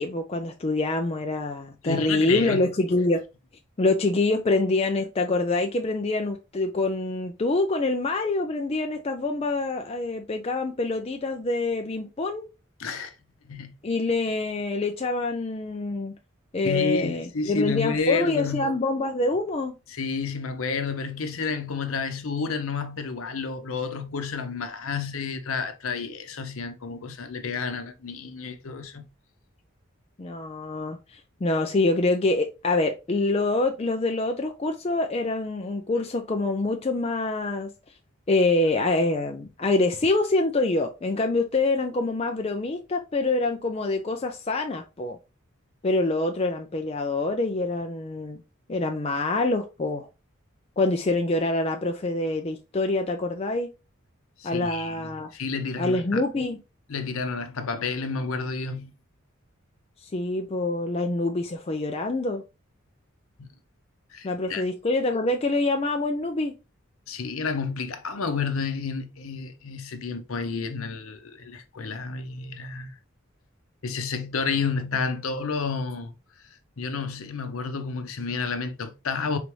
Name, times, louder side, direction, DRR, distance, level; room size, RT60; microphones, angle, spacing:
voice 1, 0.0-3.2 3.8-12.4 13.8-16.1 16.5-19.7 30.2-37.7 38.3-45.2 45.8-48.4 48.7-50.1 50.8-53.7 54.4-55.3 55.8-56.6 60.0-62.4 64.2-66.5, left 2 dB, 30° left, 0.4 m, -25 dB
voice 2, 1.8-2.7 12.8-13.1 13.4-13.7 16.6-18.7 19.9-29.0 54.4-56.2 56.9-58.9 63.4-63.5 64.1-64.6 67.1-73.0 73.8-76.1 76.8-79.4, left 5 dB, 80° left, 0.7 m, -30 dB
3.9 x 3.4 x 3.1 m
head